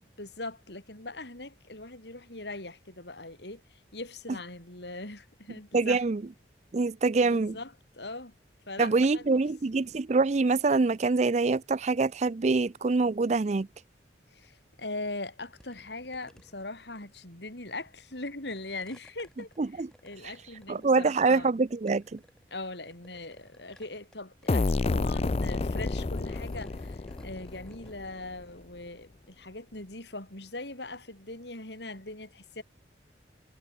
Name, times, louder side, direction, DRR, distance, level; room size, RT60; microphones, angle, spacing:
voice 1, 0.2-6.0 7.2-8.3 8.7-9.4 14.3-19.5 19.7-21.5 22.5-32.6, left 2 dB, 65° left, 5.2 m, -41 dB
voice 2, 5.7-6.2 6.7-7.6 8.8-13.7 19.6-19.9 20.7-22.2, right 3 dB, 40° right, 0.5 m, -25 dB
sound 1, 15.1-15.3 15.6-17.0 17.9-18.1 18.5-21.5 21.9-22.5 22.9-24.2 24.4-24.8 25.8-28.0, equal, 5° left, 7.1 m, -57 dB
sound 2, 24.5-28.1, left 2 dB, 35° left, 0.5 m, -29 dB
head